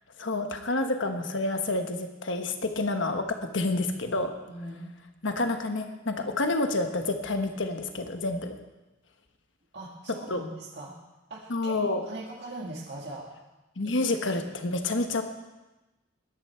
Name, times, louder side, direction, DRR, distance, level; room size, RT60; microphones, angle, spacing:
voice 1, 0.2-4.3 5.2-8.6 10.3-10.4 11.5-12.1 13.8-15.2, left 2 dB, 65° left, 6 dB, 1.3 m, -29 dB
voice 2, 4.5-5.0 9.7-11.0 11.3-13.3 13.8-14.0, right 1 dB, 60° right, -2 dB, 1.8 m, -41 dB
21.0 x 10.5 x 4.5 m, 1.1 s
head